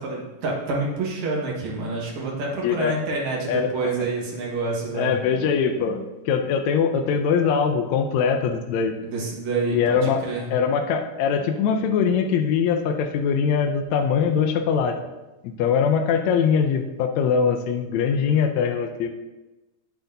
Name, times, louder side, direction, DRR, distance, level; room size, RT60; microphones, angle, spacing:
voice 1, 0.0-5.2 9.1-10.5, right 3 dB, 65° right, -2 dB, 2.7 m, -27 dB
voice 2, 2.6-3.0 3.5-3.9 4.9-9.0 9.7-10.2 10.5-15.0 15.4-19.1, left 6 dB, 75° left, 5 dB, 1.7 m, -22 dB
10.0 x 8.0 x 2.7 m, 1.1 s
omnidirectional pair, 3.7 m